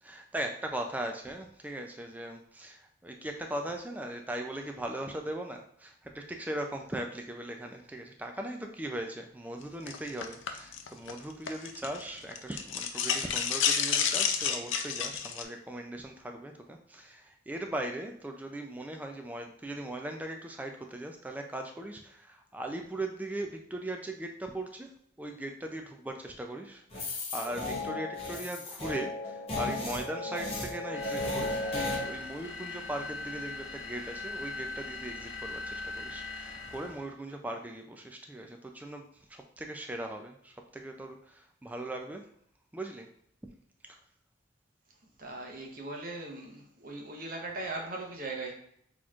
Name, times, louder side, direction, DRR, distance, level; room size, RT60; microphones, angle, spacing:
voice 1, 0.0-24.9 25.2-39.0 39.3-42.3 42.7-43.1 43.9-44.0, right 1 dB, 10° right, 3 dB, 0.3 m, -39 dB
sound 1, 9.9-12.0 12.3-15.4, left 7 dB, 85° left, 0.5 m, -30 dB
sound 2, 26.9-32.0, left 2 dB, 30° left, 0.8 m, -35 dB
sound 3, 30.9-37.1, left 3 dB, 60° left, 1.2 m, -40 dB
voice 2, 45.2-48.5, right 2 dB, 45° right, 0 dB, 0.9 m, -39 dB
6.2 x 3.0 x 2.4 m, 0.69 s
head